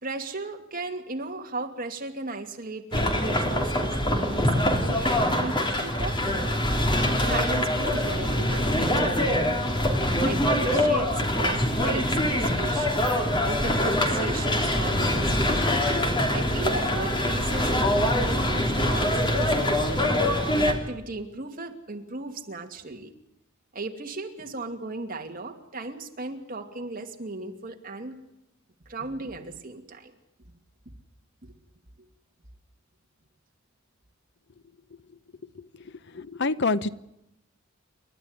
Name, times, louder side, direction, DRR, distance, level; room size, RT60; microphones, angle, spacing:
voice 1, 0.0-6.6 7.3-9.5 10.2-13.0 13.5-15.8 16.3-19.9 20.5-23.1 23.7-28.2 28.9-30.2 31.4-31.5, right 2 dB, 45° right, 3 dB, 2.6 m, -36 dB
sound 1, 2.9-20.7, left 1 dB, 25° left, 3.3 m, -24 dB
voice 2, 35.5-36.9, left 3 dB, 60° left, 15 dB, 0.8 m, -28 dB
28.5 x 12.5 x 9.7 m, 0.84 s
head